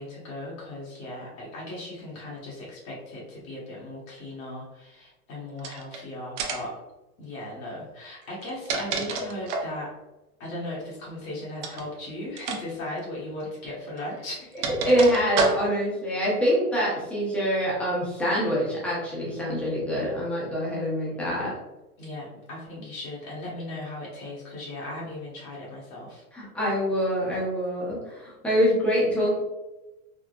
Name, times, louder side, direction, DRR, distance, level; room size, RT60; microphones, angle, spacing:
voice 1, 0.0-6.7 7.2-9.9 10.4-14.7 22.0-26.2, left 1 dB, 60° left, -5 dB, 1.2 m, -37 dB
sound 1, 5.6-6.0 6.4-6.8 8.3-9.8 11.6-11.9 12.4-12.6 12.9-13.0 14.0-15.9, right 4 dB, 50° right, 0.6 m, -29 dB
voice 2, 14.8-21.5 26.3-29.4, equal, 5° left, -6 dB, 0.6 m, -25 dB
3.7 x 2.0 x 2.3 m, 1.0 s
hypercardioid pair, 130°, 47 cm